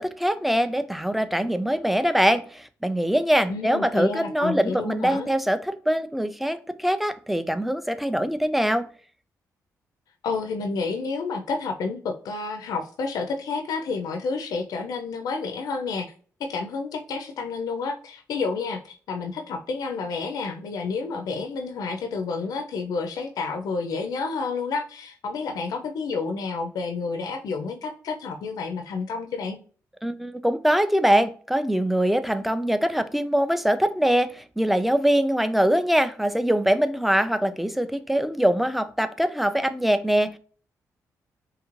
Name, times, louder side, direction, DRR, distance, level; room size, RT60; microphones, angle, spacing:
voice 1, 0.0-8.9 30.0-40.4, equal, ahead, 0.3 m, -23 dB
voice 2, 3.5-5.3 10.2-16.1 16.4-29.6, left 4 dB, 70° left, 0.4 m, -30 dB
2.8 x 2.4 x 3.0 m
cardioid pair, 65°, 7 cm